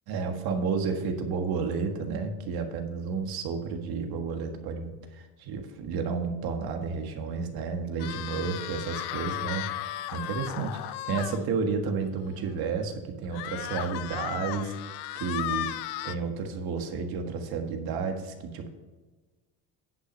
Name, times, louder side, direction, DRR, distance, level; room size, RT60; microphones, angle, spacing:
voice 1, 0.1-15.7 16.0-18.7, right 5 dB, 70° right, 4 dB, 1.7 m, -31 dB
sound 1, 8.0-11.4 11.9-12.0 12.3-12.4 13.3-16.1, left 14 dB, 80° left, 0.6 m, -35 dB
10.0 x 5.8 x 5.3 m, 1.3 s
cardioid pair, 115°, 38 cm